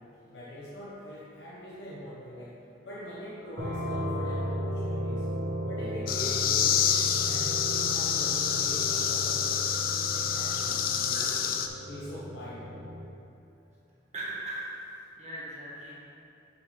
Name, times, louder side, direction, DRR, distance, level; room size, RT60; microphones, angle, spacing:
voice 1, 0.3-2.5 2.8-5.3 5.6-9.7 10.1-11.5 11.9-12.7, equal, 65° left, -7 dB, 0.9 m, -43 dB
sound 1, 3.6-13.1, equal, 55° right, 1.2 m, -35 dB
sound 2, 6.1-11.7, left 8 dB, 50° left, 0.4 m, -27 dB
voice 2, 11.1-11.4 14.1-14.7 15.2-15.9, right 2 dB, 35° right, -7 dB, 1.1 m, -38 dB
6.7 x 6.7 x 3.1 m, 2.7 s
head